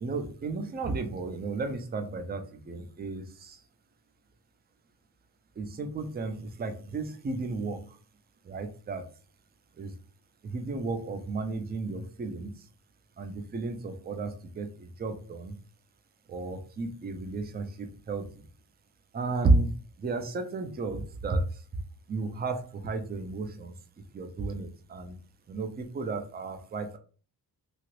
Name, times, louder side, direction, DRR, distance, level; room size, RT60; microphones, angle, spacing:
voice 1, 0.0-3.6 5.6-8.0 8.4-9.1 9.8-9.9 10.4-12.5 13.2-15.5 16.3-18.4 19.1-19.7 20.0-21.5 22.1-23.7 24.1-25.2 25.5-27.0, right 3 dB, 25° right, 7 dB, 0.4 m, -32 dB
2.9 x 2.5 x 3.0 m, 0.38 s
wide cardioid pair, 160°, 41 cm